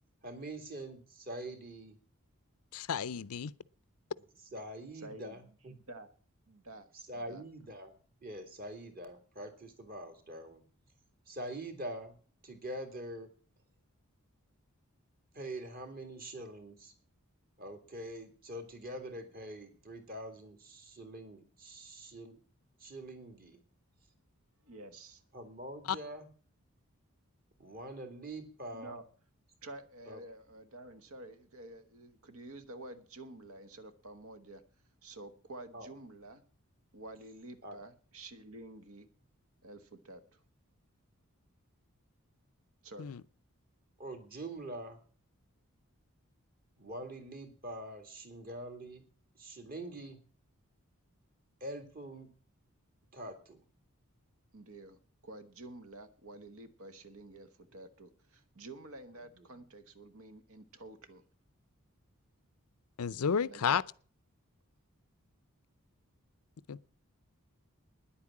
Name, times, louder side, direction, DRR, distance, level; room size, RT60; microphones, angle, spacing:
voice 1, 0.2-2.0 4.4-5.7 6.9-10.6 11.3-12.1 12.4-13.3 15.3-16.9 17.6-22.4 22.8-23.6 25.3-26.3 27.6-29.0 30.1-30.2 35.7-35.9 37.6-37.8 44.0-45.0 46.8-49.0 49.4-50.2 51.6-52.3 53.1-53.6 59.4-59.5, right 1 dB, 40° right, 2.2 m, -44 dB
voice 2, 2.7-3.5 43.0-43.2 63.0-63.8 66.7-66.8, left 7 dB, 85° left, 0.5 m, -31 dB
voice 3, 4.9-5.5 5.9-6.1 6.5-6.9 7.1-7.4 24.6-25.2 28.7-29.0 29.6-34.6 35.0-36.4 36.9-39.1 39.6-40.4 42.8-43.2 54.5-61.2 63.4-63.8, right 2 dB, 75° right, 1.3 m, -50 dB
10.0 x 8.6 x 8.6 m
head